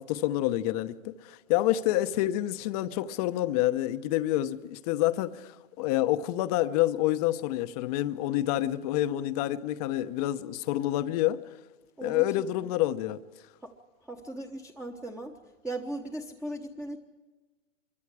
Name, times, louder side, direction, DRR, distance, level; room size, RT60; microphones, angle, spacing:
voice 1, 0.0-11.4 12.0-13.2, left 14 dB, 30° left, 0.9 m, -28 dB
voice 2, 14.1-15.4 15.6-17.0, right 1 dB, 5° right, 1.1 m, -37 dB
25.5 x 23.5 x 4.9 m
hypercardioid pair, 140°, 39 cm